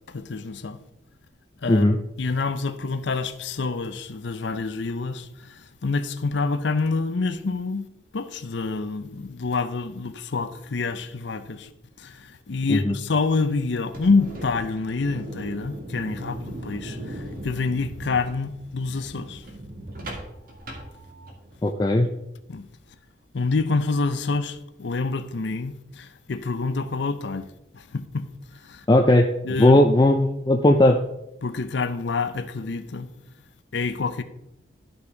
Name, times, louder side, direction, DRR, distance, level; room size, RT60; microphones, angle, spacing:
voice 1, 0.1-0.8 1.6-7.9 8.1-11.7 12.0-19.5 22.5-22.7 23.3-28.3 28.6-28.9 29.4-29.8 31.4-33.1 33.7-34.2, left 4 dB, 65° left, 0.6 m, -27 dB
sound 1, 13.8-21.6, right 1 dB, 45° right, 1.9 m, -38 dB
voice 2, 21.6-22.1 28.9-29.3 29.6-31.0, left 1 dB, 20° left, 0.4 m, -17 dB
11.5 x 5.8 x 3.9 m
head